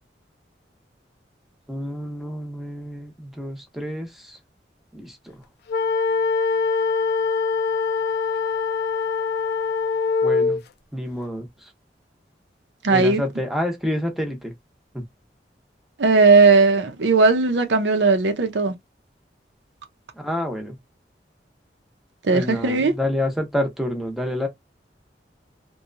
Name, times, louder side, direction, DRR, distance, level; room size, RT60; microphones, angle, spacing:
voice 1, 1.7-4.4 4.9-5.4 10.2-10.6 10.9-11.7 12.9-14.5 14.9-15.0 20.1-20.8 22.3-24.5, left 1 dB, ahead, 0.8 m, -28 dB
sound 1, 5.7-10.6, left 4 dB, 60° left, 0.4 m, -23 dB
voice 2, 12.8-13.2 16.0-18.7 22.2-22.9, right 4 dB, 85° right, 0.6 m, -17 dB
2.8 x 2.2 x 2.5 m
head